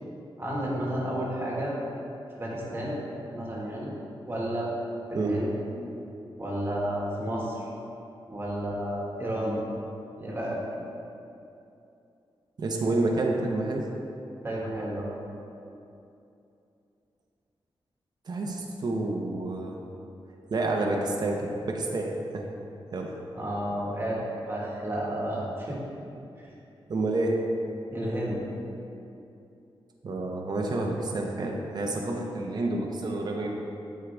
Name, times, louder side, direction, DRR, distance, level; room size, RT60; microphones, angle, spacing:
voice 1, 0.4-1.8 2.4-3.0 3.3-3.9 4.3-4.7 5.1-5.5 6.4-7.7 8.3-9.6 10.2-10.6 14.4-15.1 23.3-24.2 24.5-25.8 26.4-26.5 27.9-28.4, right 1 dB, 25° right, -5 dB, 1.6 m, -31 dB
voice 2, 12.6-13.8 18.3-19.8 20.5-22.5 22.9-23.1 26.9-27.4 30.0-33.5, right 2 dB, 45° right, 0 dB, 0.7 m, -29 dB
13.0 x 4.6 x 3.4 m, 2.7 s
wide cardioid pair, 170°, 10 cm